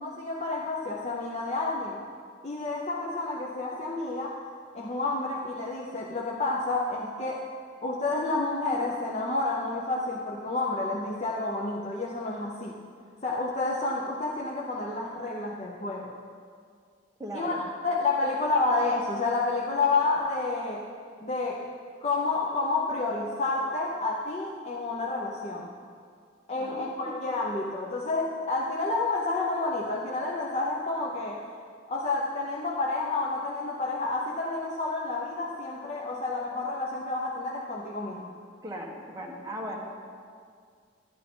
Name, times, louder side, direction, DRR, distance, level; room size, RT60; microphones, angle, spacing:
voice 1, 0.0-2.0 2.4-4.4 4.7-7.4 7.8-12.8 13.2-16.1 17.3-17.6 17.8-20.8 21.2-21.7 22.0-25.7 26.5-31.4 31.9-38.3, left 3 dB, 35° left, -3 dB, 0.7 m, -29 dB
voice 2, 17.2-17.6 26.5-27.2 38.6-39.8, right 1 dB, 20° right, -2 dB, 1.3 m, -38 dB
11.5 x 11.0 x 3.8 m, 2.1 s
head